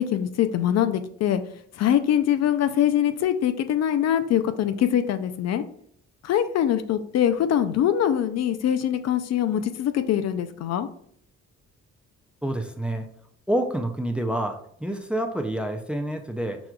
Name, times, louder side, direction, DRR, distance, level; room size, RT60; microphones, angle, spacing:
voice 1, 0.0-1.4 1.8-5.6 6.2-10.9, left 10 dB, 60° left, 10 dB, 0.4 m, -23 dB
voice 2, 12.4-13.1 13.5-16.6, right 1 dB, 5° right, 6 dB, 0.4 m, -28 dB
6.0 x 2.3 x 2.2 m, 0.66 s
cardioid pair, 90°, 30 cm